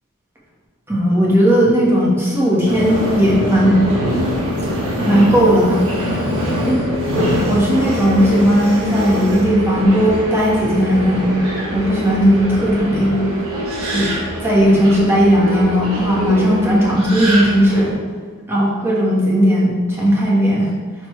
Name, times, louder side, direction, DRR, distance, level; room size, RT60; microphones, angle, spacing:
voice 1, 0.9-3.8 5.1-5.8 6.6-6.8 7.1-11.4 11.7-13.2 13.9-14.1 14.4-17.9 18.5-20.7, equal, 10° right, -5 dB, 1.6 m, -16 dB
Subway metro underground, 2.7-17.9, equal, 70° right, 1.6 m, -23 dB
11.0 x 4.3 x 3.3 m, 1.4 s
head